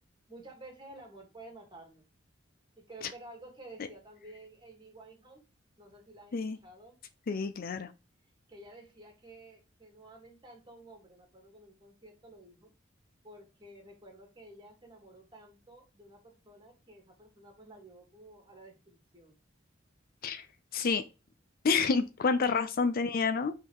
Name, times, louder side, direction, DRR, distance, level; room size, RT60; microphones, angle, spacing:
voice 1, 0.3-2.1 2.8-5.4 5.8-6.4 6.6-7.0 8.5-12.7 13.2-19.4, right 2 dB, 25° right, 2.0 m, -52 dB
voice 2, 7.3-7.9 20.2-20.5 20.7-21.0 21.6-23.5, left 4 dB, 50° left, 0.5 m, -28 dB
5.4 x 3.7 x 4.8 m
head